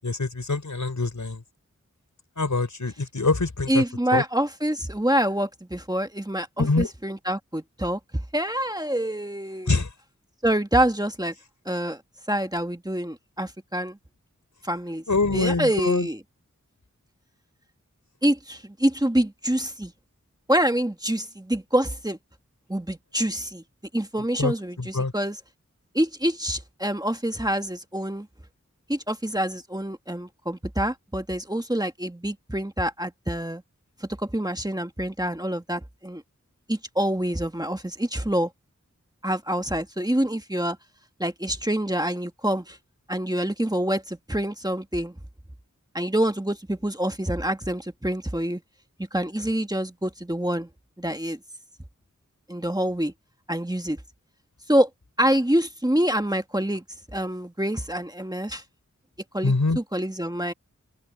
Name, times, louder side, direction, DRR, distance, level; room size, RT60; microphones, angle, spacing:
voice 1, 0.0-1.4 2.4-3.8 4.1-4.2 6.6-6.9 9.7-9.9 15.1-16.1 24.4-25.1 59.4-59.8, left 3 dB, 80° left, 5.8 m, -24 dB
voice 2, 3.7-8.0 8.3-9.8 10.4-11.3 11.6-12.0 12.3-14.0 14.6-15.0 15.3-16.2 18.2-19.9 20.5-22.2 22.7-23.6 23.9-25.4 25.9-28.3 28.9-33.6 34.0-36.2 36.7-38.5 39.2-40.8 41.2-42.8 43.1-45.1 45.9-48.6 49.1-50.7 51.0-51.4 52.5-53.1 53.5-54.0 54.7-54.9 55.2-56.8 57.1-58.6 59.3-60.5, right 1 dB, 15° right, 1.5 m, -26 dB
open air
wide cardioid pair, 50°, 30 cm